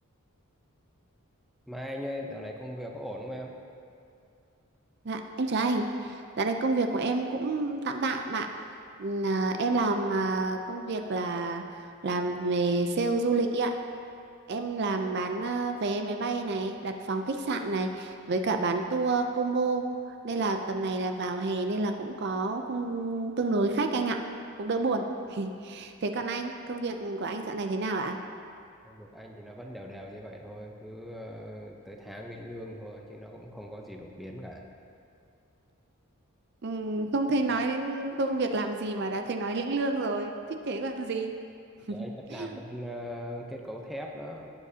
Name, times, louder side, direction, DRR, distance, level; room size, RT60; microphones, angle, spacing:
voice 1, 1.7-3.6 28.8-34.7 41.9-44.5, equal, ahead, 0 dB, 0.7 m, -40 dB
voice 2, 5.0-8.5 9.0-13.7 14.5-19.8 20.2-24.2 24.6-28.2 36.6-40.3 40.6-41.3 41.9-42.0 42.4-42.5, right 3 dB, 50° right, 5 dB, 0.5 m, -29 dB
18.0 x 7.3 x 2.8 m, 2.5 s
head